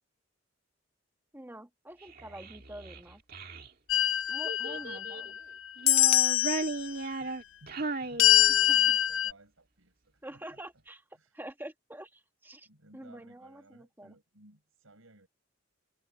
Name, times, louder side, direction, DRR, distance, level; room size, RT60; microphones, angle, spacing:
voice 1, 1.3-3.2 4.3-5.2 8.7-8.8 10.2-11.0 11.3-12.7 12.9-14.1, right 1 dB, 10° right, 1.6 m, -46 dB
Child speech kid speaking, 2.0-3.7 4.4-5.3 5.8-8.9, right 3 dB, 45° right, 2.0 m, -36 dB
sound 1, 3.9-5.4 5.9-6.7 8.2-9.3, left 13 dB, 70° left, 0.5 m, -24 dB
voice 2, 4.7-5.1 7.2-10.6 11.1-11.4 12.6-15.3, right 2 dB, 85° right, 5.6 m, -58 dB
head